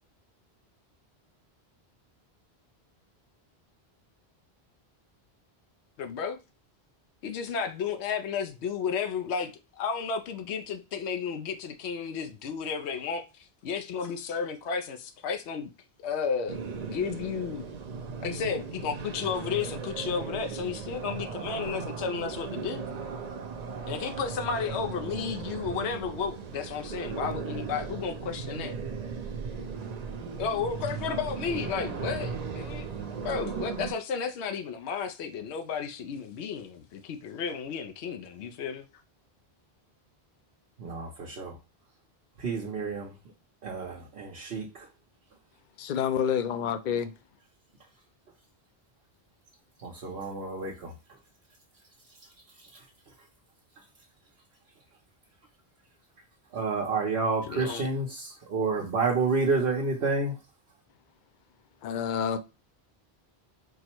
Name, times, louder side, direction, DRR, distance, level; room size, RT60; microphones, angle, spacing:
voice 1, 6.0-6.4 7.2-15.7 16.0-17.7 18.2-22.8 23.8-28.7 30.4-38.8 57.5-57.9, left 6 dB, 90° left, 0.9 m, -33 dB
sound 1, 16.5-33.9, right 5 dB, 50° right, 0.6 m, -37 dB
voice 2, 40.8-41.6 42.4-43.1 43.6-44.9 49.8-50.9 56.5-60.3, right 4 dB, 70° right, 1.1 m, -29 dB
voice 3, 45.8-47.1 61.8-62.4, left 8 dB, 55° left, 0.6 m, -28 dB
4.5 x 2.1 x 4.3 m
omnidirectional pair, 1.1 m